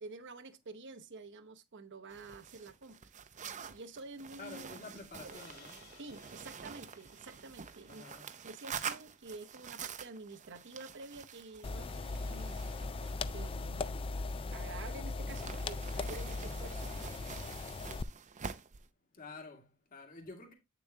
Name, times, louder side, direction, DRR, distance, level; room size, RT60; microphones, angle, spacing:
voice 1, 0.0-3.0 3.4-4.7 5.2-5.3 6.0-8.1 8.4-12.6 13.3-14.2 14.5-16.9, right 3 dB, 60° right, 0.9 m, -49 dB
sound 1, 2.1-14.8 15.3-18.9, right 7 dB, 35° right, 0.6 m, -47 dB
voice 2, 4.4-5.8 7.8-8.3 8.7-8.8 19.1-20.5, left 3 dB, 40° left, 2.0 m, -49 dB
sound 2, 5.3-9.9, left 4 dB, 65° left, 2.9 m, -62 dB
sound 3, 11.6-18.0, left 3 dB, 25° left, 0.3 m, -38 dB
8.5 x 7.0 x 2.7 m
head